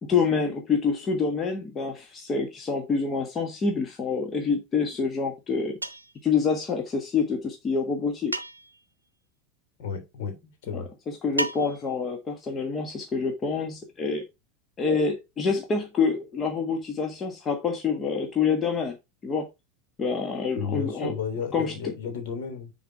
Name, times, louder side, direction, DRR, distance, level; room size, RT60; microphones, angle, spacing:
voice 1, 0.0-5.8 6.2-8.3 10.7-14.2 14.8-18.9 19.2-19.5 20.0-21.1 21.5-21.9, left 5 dB, 25° left, 1.5 m, -27 dB
sound 1, 5.8-6.2 8.3-8.9 11.4-12.0, right 2 dB, 85° right, 0.7 m, -32 dB
voice 2, 9.8-10.9 20.6-22.7, left 6 dB, 55° left, 3.2 m, -33 dB
10.0 x 4.3 x 4.7 m
figure-of-eight pair, 80°, 0 cm